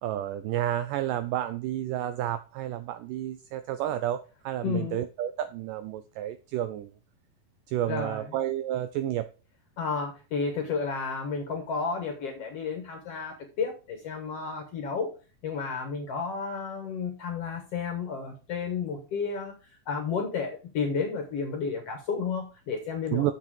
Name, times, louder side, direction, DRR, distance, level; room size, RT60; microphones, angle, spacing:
voice 1, 0.0-6.9 7.7-9.3 23.1-23.3, right 12 dB, 85° right, 1.9 m, -30 dB
voice 2, 4.6-5.0 7.9-8.4 9.8-15.1 15.4-19.5 19.9-23.3, left 5 dB, 65° left, 1.6 m, -32 dB
7.3 x 6.6 x 4.7 m
omnidirectional pair, 4.3 m